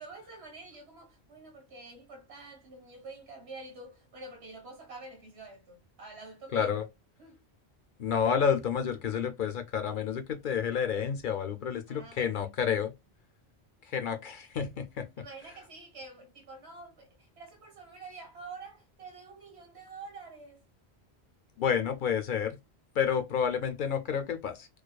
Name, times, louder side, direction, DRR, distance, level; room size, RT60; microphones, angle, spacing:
voice 1, 0.0-6.8 7.2-7.4 11.9-12.8 15.2-20.6, right 3 dB, 80° right, 1.5 m, -47 dB
voice 2, 6.5-6.8 8.0-12.9 13.8-15.2 21.6-22.6 23.0-24.7, left 7 dB, 60° left, 0.6 m, -30 dB
4.7 x 2.2 x 2.2 m
omnidirectional pair, 1.1 m